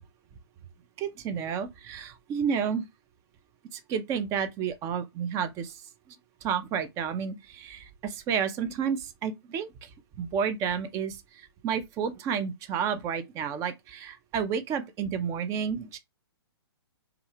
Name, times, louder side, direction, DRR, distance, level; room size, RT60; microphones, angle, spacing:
voice 1, 1.0-2.8 3.7-5.8 6.1-6.2 6.4-9.9 10.2-16.0, right 7 dB, 25° right, 0.4 m, -31 dB
2.3 x 2.3 x 2.9 m
figure-of-eight pair, 120°, 14 cm